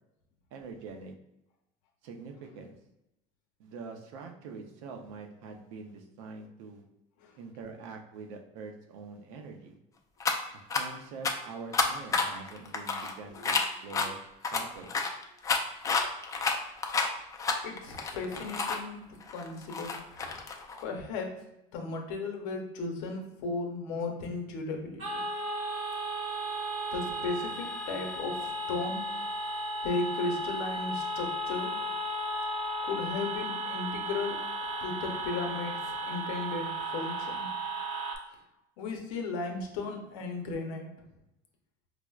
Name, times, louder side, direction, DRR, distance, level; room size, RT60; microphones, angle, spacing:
voice 1, 0.5-1.1 2.0-2.8 3.6-6.8 7.4-9.8 10.7-13.5 13.8-14.2 14.5-14.9, right 4 dB, 85° right, 3 dB, 0.6 m, -44 dB
sound 1, 10.2-10.3 10.7-10.8 11.2-11.3 11.7-14.1 14.4-18.8 19.2-20.8, left 4 dB, 20° left, 0.3 m, -30 dB
voice 2, 17.6-19.1 19.3-20.0 20.8-21.3 21.7-25.2 26.9-29.0 29.8-31.8 32.8-34.4 34.8-37.5 38.8-40.9, left 3 dB, 85° left, 2 dB, 0.7 m, -35 dB
sound 2, 25.0-38.2, right 1 dB, 45° right, 0.7 m, -35 dB
4.7 x 2.0 x 2.3 m, 0.89 s
supercardioid pair, 125°, 16 cm